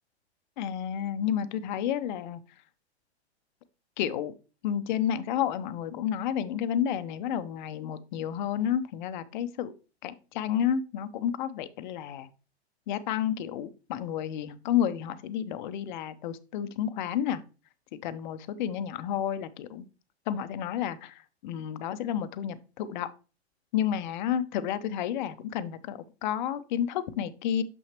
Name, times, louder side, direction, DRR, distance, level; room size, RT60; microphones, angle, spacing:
voice 1, 0.6-2.4 4.0-4.3 4.6-9.7 10.0-12.3 12.9-17.4 18.0-19.8 20.3-23.1 23.7-27.6, left 9 dB, 45° left, 14 dB, 0.7 m, -31 dB
7.1 x 5.6 x 2.9 m, 0.33 s
hypercardioid pair, 110°, 34 cm